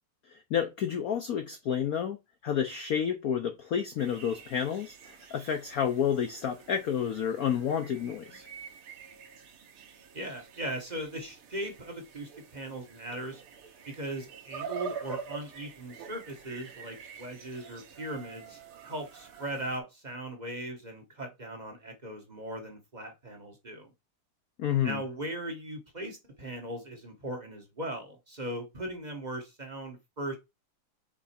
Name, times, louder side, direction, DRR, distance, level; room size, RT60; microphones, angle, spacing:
voice 1, 0.5-2.2 2.4-5.0 5.3-8.5 24.6-25.0, left 8 dB, 75° left, 0.8 m, -30 dB
sound 1, 4.0-19.8, right 5 dB, 80° right, 2.0 m, -46 dB
voice 2, 10.1-13.4 13.8-23.9 24.8-30.4, right 1 dB, 35° right, 0.7 m, -39 dB
6.0 x 4.1 x 4.3 m
omnidirectional pair, 2.4 m